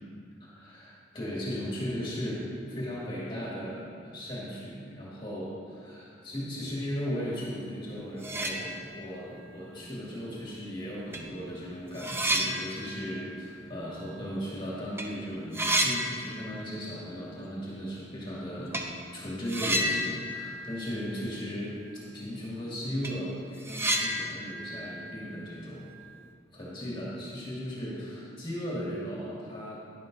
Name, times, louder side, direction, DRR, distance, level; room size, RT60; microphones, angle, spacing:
voice 1, 0.4-18.8 19.1-21.7 22.1-25.8 26.5-29.8, equal, 25° left, -7 dB, 2.0 m, -36 dB
sound 1, 7.8-7.9 8.1-9.2 9.6-9.7 10.6-10.7 11.1-14.6 14.8-15.1 15.3-16.9 17.1-17.2 18.7-18.9 19.5-21.6 21.9-22.0 22.4-22.5 22.8-26.0, right 1 dB, 10° right, 0.6 m, -32 dB
11.0 x 10.5 x 2.6 m, 2.3 s
head